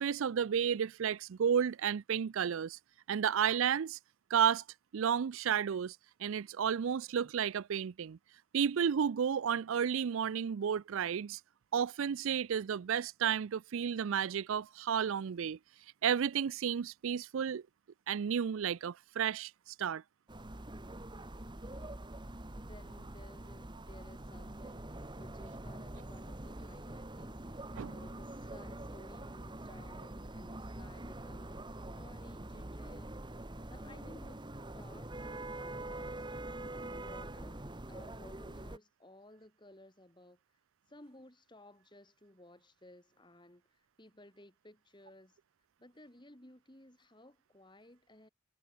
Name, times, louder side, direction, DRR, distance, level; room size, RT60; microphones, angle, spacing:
voice 1, 0.0-2.8 3.1-4.0 4.3-4.6 4.9-8.2 8.5-11.4 11.7-15.6 16.0-17.6 18.1-19.5 19.8-20.0 27.8-27.9, right 8 dB, 70° right, 0.4 m, -32 dB
sound 1, 20.3-38.8, right 1 dB, 20° right, 1.4 m, -45 dB
voice 2, 21.6-22.1 22.5-24.8 25.2-27.6 27.8-31.6 31.9-33.2 33.6-40.4 40.9-45.4 45.8-48.3, left 1 dB, 20° left, 2.9 m, -57 dB
head